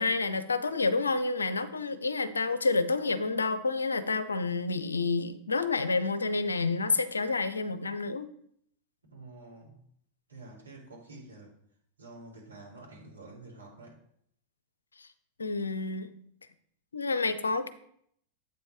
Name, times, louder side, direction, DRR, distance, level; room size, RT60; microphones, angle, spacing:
voice 1, 0.0-8.3 15.0-15.1 15.4-16.1 16.9-17.7, left 3 dB, 75° left, 13 dB, 0.5 m, -29 dB
voice 2, 9.1-9.8 10.3-11.6 12.0-14.0, right 2 dB, 75° right, -3 dB, 2.4 m, -49 dB
8.1 x 4.5 x 4.1 m, 0.68 s
figure-of-eight pair, 90°, 0 cm